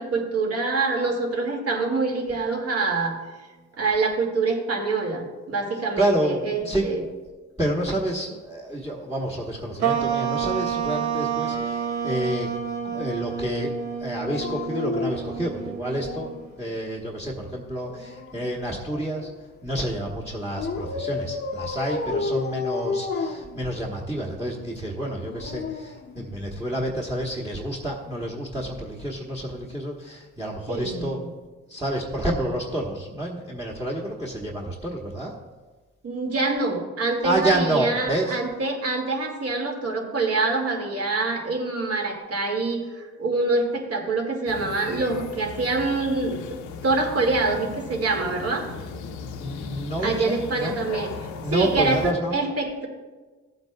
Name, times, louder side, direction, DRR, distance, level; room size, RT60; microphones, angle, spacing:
voice 1, 0.0-3.2 3.8-7.0 30.7-31.3 36.0-46.4 46.8-48.7 50.0-52.9, right 3 dB, 50° right, 1 dB, 2.2 m, -25 dB
voice 2, 5.9-6.9 7.6-12.5 12.8-16.3 16.6-19.3 19.6-31.2 31.7-35.3 37.2-38.4 49.4-50.8 51.4-52.4, right 1 dB, 10° right, -2 dB, 1.2 m, -29 dB
Dog, 9.8-11.6 14.1-16.5 17.7-19.4 20.6-24.1 25.1-26.7 28.0-28.2, left 4 dB, 35° left, 0.7 m, -33 dB
sound 1, 9.8-16.5, right 7 dB, 70° right, 1.1 m, -29 dB
sound 2, 44.5-52.1, left 5 dB, 80° left, 0.8 m, -37 dB
15.0 x 7.9 x 2.3 m, 1.3 s
cardioid pair, 90°, 30 cm